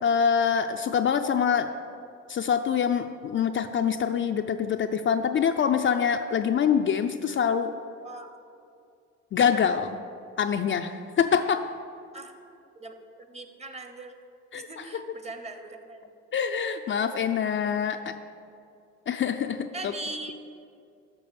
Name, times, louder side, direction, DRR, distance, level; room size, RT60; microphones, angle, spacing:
voice 1, 0.0-1.7 2.3-7.7 9.3-10.0 10.4-11.6 14.5-14.8 16.3-18.1 19.1-19.9, left 7 dB, 40° left, 6 dB, 0.4 m, -25 dB
voice 2, 12.8-14.2 14.5-16.1 19.7-20.3, right 2 dB, 20° right, 6 dB, 0.8 m, -40 dB
6.7 x 5.9 x 6.9 m, 2.4 s
cardioid pair, 90°, 30 cm